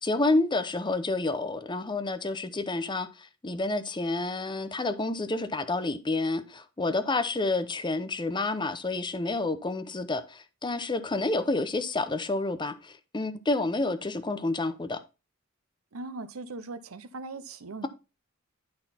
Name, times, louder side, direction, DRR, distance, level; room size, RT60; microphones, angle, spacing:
voice 1, 0.0-15.0, left 2 dB, 20° left, 0.6 m, -29 dB
voice 2, 15.9-17.9, right 3 dB, 75° right, 0.8 m, -39 dB
11.5 x 4.0 x 4.2 m
head